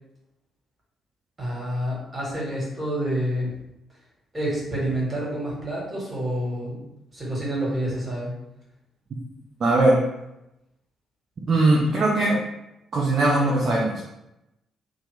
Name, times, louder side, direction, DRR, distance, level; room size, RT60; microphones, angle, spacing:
voice 1, 1.4-3.5 4.3-6.8 7.1-8.3, right 1 dB, 25° right, -5 dB, 1.4 m, -28 dB
voice 2, 9.6-10.0 11.5-12.4 12.9-14.0, right 2 dB, 45° right, -4 dB, 0.5 m, -20 dB
2.8 x 2.1 x 3.4 m, 0.87 s
figure-of-eight pair, 40°, 0 cm